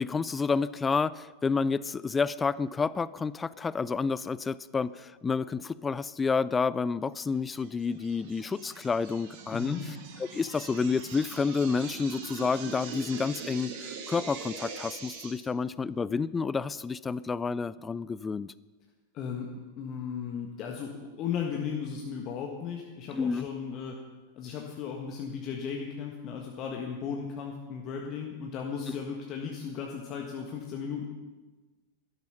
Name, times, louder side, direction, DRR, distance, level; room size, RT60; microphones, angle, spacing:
voice 1, 0.0-9.8 10.3-18.5 23.1-23.5, left 5 dB, 15° left, 19 dB, 0.4 m, -29 dB
sound 1, 7.6-15.3, right 5 dB, 50° right, 2.3 m, -42 dB
voice 2, 9.5-9.8 19.1-20.9 21.2-24.0 24.3-31.1, left 6 dB, 35° left, 1 dB, 1.5 m, -36 dB
13.0 x 11.5 x 5.8 m, 1.3 s
figure-of-eight pair, 90°, 0 cm